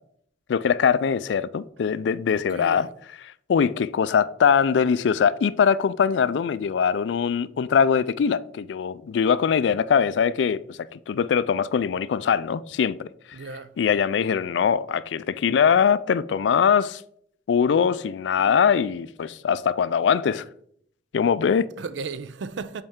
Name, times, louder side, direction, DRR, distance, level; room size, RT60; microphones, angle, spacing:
voice 1, 0.5-2.9 3.5-13.1 13.8-17.0 17.5-20.4 21.1-21.7, left 7 dB, 75° left, 0.3 m, -22 dB
voice 2, 2.3-2.9 13.3-13.7 21.8-22.8, right 4 dB, 85° right, 0.5 m, -35 dB
7.8 x 4.4 x 3.6 m
head